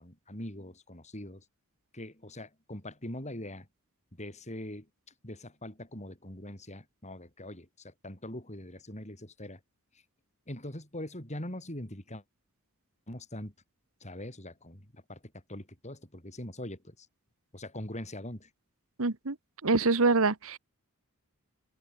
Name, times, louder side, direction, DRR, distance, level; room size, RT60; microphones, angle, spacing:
voice 1, 0.0-1.4 1.9-3.7 4.1-4.9 5.2-9.6 10.5-12.2 13.1-13.5 14.0-17.1 17.5-18.5, left 1 dB, 30° left, 7.1 m, -42 dB
voice 2, 19.0-19.4 19.6-20.6, right 3 dB, 65° right, 1.3 m, -25 dB
open air
head